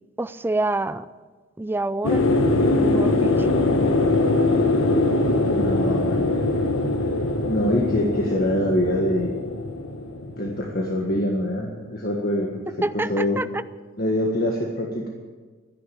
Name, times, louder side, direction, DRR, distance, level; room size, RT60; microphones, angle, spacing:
voice 1, 0.2-1.1 1.6-2.2 2.8-3.5 12.8-13.6, right 2 dB, 10° right, 13 dB, 0.4 m, -26 dB
sound 1, 2.0-11.3 11.6-11.7, left 2 dB, 80° left, 1.2 m, -22 dB
voice 2, 5.4-6.4 7.5-9.3 10.4-12.6 12.9-13.4 14.0-15.1, left 1 dB, 50° left, -1 dB, 1.6 m, -24 dB
12.5 x 10.5 x 8.6 m, 1.4 s
head